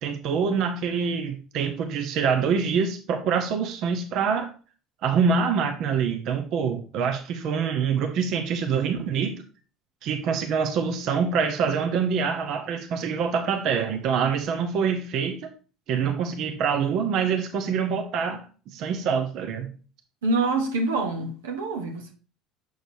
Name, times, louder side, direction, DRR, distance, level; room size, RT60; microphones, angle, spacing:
voice 1, 0.0-4.5 5.0-9.4 10.0-15.5 15.9-18.4 18.7-19.7, right 6 dB, 60° right, 0.9 m, -25 dB
voice 2, 20.2-22.1, right 3 dB, 85° right, 1.0 m, -26 dB
6.5 x 6.5 x 2.7 m
hypercardioid pair, 70°, 0 cm